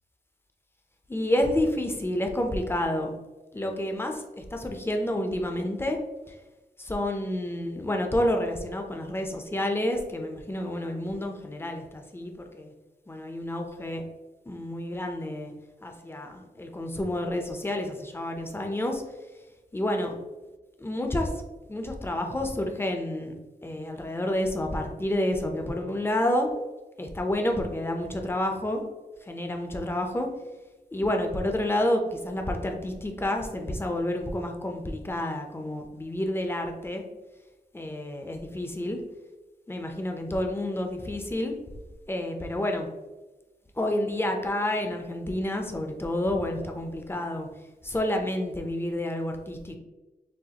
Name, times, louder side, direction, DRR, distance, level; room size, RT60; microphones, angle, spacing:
voice 1, 1.1-3.1 3.5-6.0 6.3-6.4 6.8-12.7 13.1-14.0 14.5-15.5 15.8-19.0 19.7-20.1 20.8-21.3 21.7-23.3 23.6-26.5 27.0-28.8 29.2-30.3 30.9-37.0 37.7-39.0 39.7-41.6 42.1-42.9 43.8-47.5 47.8-49.8, left 1 dB, 15° left, 3 dB, 0.5 m, -29 dB
6.3 x 2.5 x 2.8 m, 1.1 s
wide cardioid pair, 155°, 16 cm